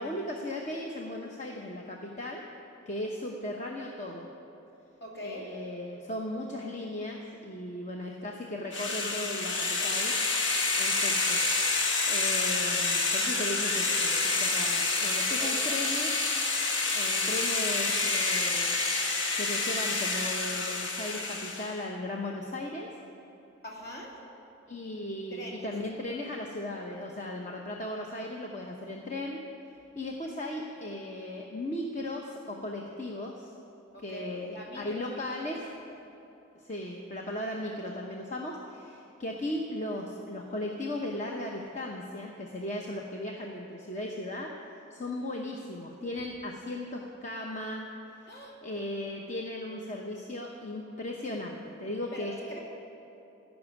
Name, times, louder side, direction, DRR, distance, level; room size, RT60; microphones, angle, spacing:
voice 1, 0.0-2.4 2.9-4.3 5.2-10.1 10.8-11.4 12.1-16.2 16.9-22.9 24.7-29.4 29.9-33.5 34.0-35.6 36.5-44.6 44.9-47.9 48.1-52.3, left 1 dB, 40° left, 0 dB, 0.9 m, -37 dB
voice 2, 5.0-5.5 15.4-15.6 23.6-24.2 25.3-25.7 33.9-35.0 35.3-35.4 35.6-35.8 48.3-48.5 52.1-52.6, equal, 55° left, -2 dB, 2.6 m, -42 dB
sound 1, 8.7-21.8, left 3 dB, 70° left, 1.4 m, -28 dB
15.0 x 6.2 x 9.7 m, 2.9 s
head